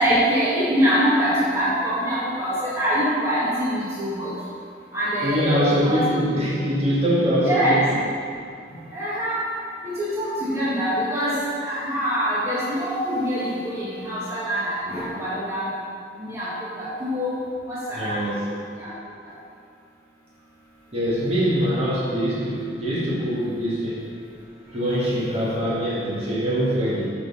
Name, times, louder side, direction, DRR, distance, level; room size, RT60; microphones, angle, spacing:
voice 1, 0.0-4.3 4.9-6.1 7.5-7.8 8.9-9.4 9.8-15.7 16.2-18.3 18.8-18.9, equal, 15° right, -10 dB, 1.4 m, -24 dB
voice 2, 5.2-7.9 17.9-18.4 20.9-24.0 24.7-27.1, equal, 35° right, -7 dB, 1.6 m, -23 dB
6.4 x 5.2 x 5.3 m, 2.4 s
head